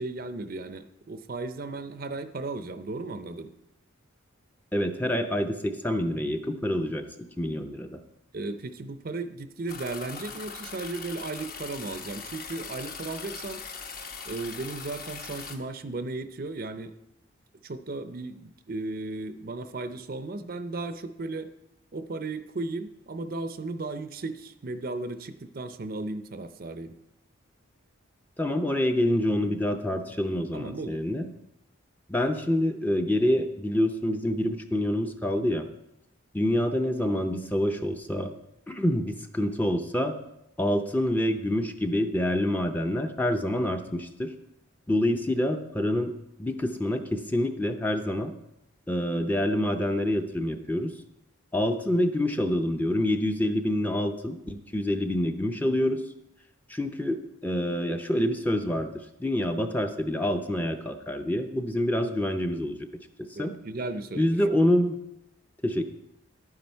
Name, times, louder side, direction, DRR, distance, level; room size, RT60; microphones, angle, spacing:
voice 1, 0.0-3.5 8.3-13.6 14.2-17.0 17.6-21.5 21.9-27.0 30.5-31.0 63.4-64.5, right 3 dB, 45° right, 10 dB, 0.5 m, -35 dB
voice 2, 4.7-7.0 7.4-8.0 28.4-31.3 32.1-35.7 36.3-38.3 38.7-40.1 40.6-44.3 44.9-46.1 46.4-48.3 48.9-50.9 51.5-56.0 56.7-58.9 59.2-62.8 63.3-63.6 64.2-65.0 65.6-65.8, left 1 dB, 10° left, 5 dB, 0.5 m, -27 dB
sound 1, 9.7-15.6, left 5 dB, 45° left, 1.0 m, -40 dB
11.0 x 9.6 x 4.5 m, 0.86 s
head